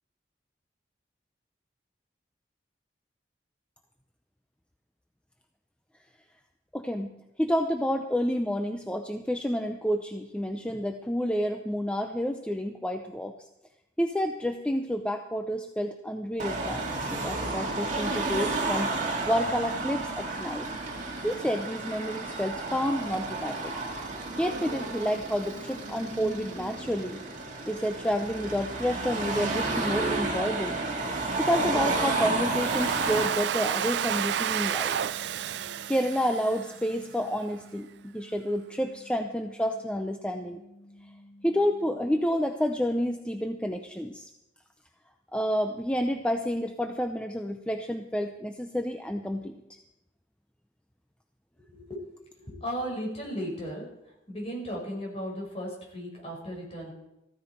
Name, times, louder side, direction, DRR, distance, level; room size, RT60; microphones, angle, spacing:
voice 1, 6.7-7.1 7.4-13.3 14.0-18.9 19.3-20.7 21.2-23.7 24.4-27.2 27.7-30.8 31.4-35.0 35.9-40.6 41.4-44.3 45.3-49.6, equal, 5° left, 5 dB, 0.6 m, -29 dB
Car passing by / Traffic noise roadway noise / Engine, 16.4-33.3, right 3 dB, 45° right, 2.1 m, -31 dB
Domestic sounds home sounds, 32.2-37.1, right 9 dB, 70° right, 0.4 m, -31 dB
sound 1, 33.3-42.2, left 1 dB, 60° left, 3.3 m, -53 dB
voice 2, 51.7-52.0 52.4-53.8 54.3-56.9, equal, 35° left, -1 dB, 5.0 m, -35 dB
15.0 x 14.0 x 4.4 m, 0.89 s
head